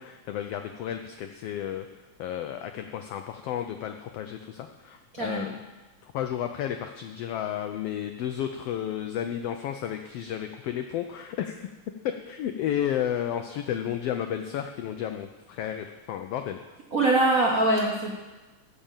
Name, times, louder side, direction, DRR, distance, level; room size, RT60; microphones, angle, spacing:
voice 1, 0.0-1.9 2.2-5.6 6.0-11.7 12.0-16.6, left 10 dB, 90° left, 6 dB, 1.3 m, -32 dB
voice 2, 5.1-5.6 16.9-18.1, right 2 dB, 75° right, -2 dB, 0.7 m, -23 dB
15.0 x 5.2 x 7.2 m, 1.2 s
omnidirectional pair, 3.4 m